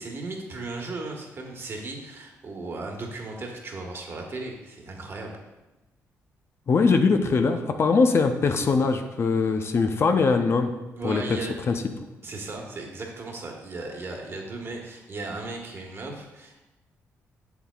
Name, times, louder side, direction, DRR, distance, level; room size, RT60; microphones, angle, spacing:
voice 1, 0.0-5.4 11.0-11.6 12.2-16.6, right 3 dB, 45° right, 1 dB, 1.4 m, -36 dB
voice 2, 6.7-10.7 11.0-11.2 11.7-11.8, left 4 dB, 50° left, 7 dB, 0.6 m, -21 dB
7.2 x 7.0 x 2.4 m, 1.0 s
cardioid pair, 70°, 6 cm